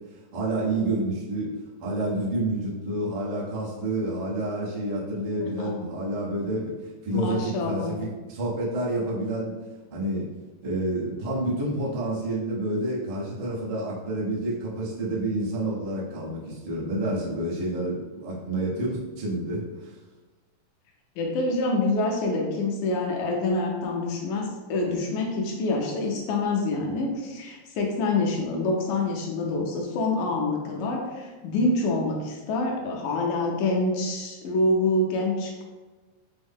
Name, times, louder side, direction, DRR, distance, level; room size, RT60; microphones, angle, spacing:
voice 1, 0.1-1.5 1.8-9.6 9.9-10.3 10.6-20.0, right 1 dB, 80° right, -7 dB, 1.0 m, -29 dB
voice 2, 5.4-5.8 7.1-8.0 21.2-35.6, left 2 dB, 80° left, -1 dB, 2.1 m, -26 dB
6.1 x 2.1 x 3.5 m, 1.2 s
omnidirectional pair, 3.8 m